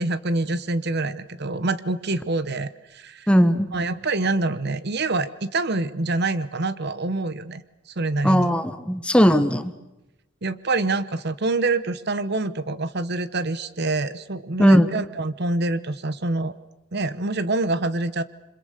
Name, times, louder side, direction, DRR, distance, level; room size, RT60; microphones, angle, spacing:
voice 1, 0.0-3.3 3.7-7.6 7.9-8.5 10.4-16.5 16.9-18.2, right 2 dB, 55° right, 14 dB, 1.0 m, -26 dB
voice 2, 3.3-3.7 8.2-9.7 14.6-14.9, equal, 5° left, 9 dB, 1.3 m, -18 dB
28.5 x 26.0 x 6.7 m, 0.93 s
head